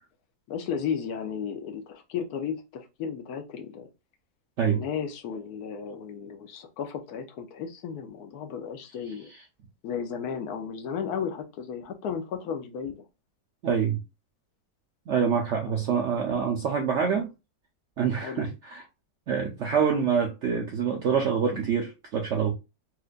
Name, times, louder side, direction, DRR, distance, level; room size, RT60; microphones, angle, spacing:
voice 1, 0.5-3.9 4.6-9.3 9.8-13.0 15.7-16.0 17.1-17.2 18.2-18.5, left 7 dB, 70° left, 1.1 m, -34 dB
voice 2, 13.6-14.0 15.1-17.3 18.0-18.8 19.3-22.5, right 7 dB, 70° right, 0.7 m, -26 dB
4.3 x 2.5 x 2.4 m
omnidirectional pair, 1.9 m